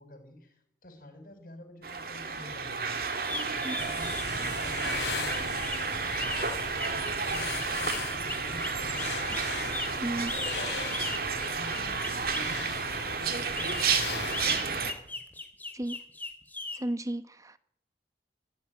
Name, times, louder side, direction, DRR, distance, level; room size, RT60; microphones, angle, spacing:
voice 1, 0.0-9.8 10.1-11.0 11.5-15.2, left 1 dB, 50° left, 7 dB, 5.6 m, -50 dB
sound 1, 1.8-14.9, right 5 dB, 55° right, 2.5 m, -32 dB
sound 2, 3.2-12.5 13.3-16.8, left 2 dB, 10° left, 2.7 m, -38 dB
sound 3, 3.8-14.9, left 4 dB, 70° left, 4.2 m, -39 dB
voice 2, 10.0-10.3 15.7-16.0 16.7-17.6, right 1 dB, 20° right, 13 dB, 1.0 m, -33 dB
25.0 x 14.5 x 9.6 m, 0.76 s
head